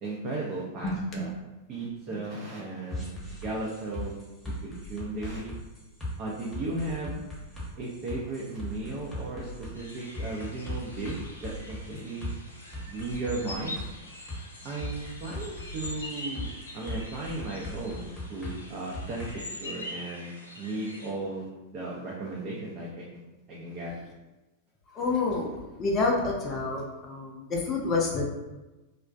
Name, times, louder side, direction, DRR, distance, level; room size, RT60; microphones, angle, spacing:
voice 1, 0.0-1.3 1.7-4.2 4.5-5.5 6.2-7.1 7.8-12.3 12.9-13.8 14.6-23.2 23.5-23.9, right 2 dB, 40° right, -4 dB, 0.5 m, -36 dB
voice 2, 0.8-1.2 24.9-25.5 25.8-28.2, left 3 dB, 30° left, -1 dB, 0.5 m, -28 dB
sound 1, 2.9-19.3, left 1 dB, 10° left, 0.9 m, -39 dB
sound 2, 9.7-21.1, left 1 dB, 85° left, 0.4 m, -44 dB
2.3 x 2.1 x 2.5 m, 1.1 s
figure-of-eight pair, 95°, 0 cm